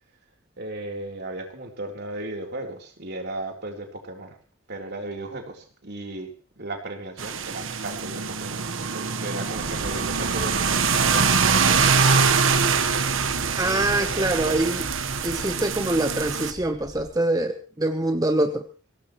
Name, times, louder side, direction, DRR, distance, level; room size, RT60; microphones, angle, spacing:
voice 1, 0.6-4.4 4.7-12.8 13.1-14.6, right 2 dB, 55° right, 2 dB, 3.8 m, -36 dB
sound 1, 7.2-16.5, right 5 dB, 70° right, 1.3 m, -23 dB
sound 2, 9.6-17.1, equal, 70° left, 5.7 m, -39 dB
voice 2, 13.6-14.8 15.2-18.7, right 1 dB, 20° right, 6 dB, 1.0 m, -24 dB
22.0 x 18.5 x 3.2 m, 0.34 s
head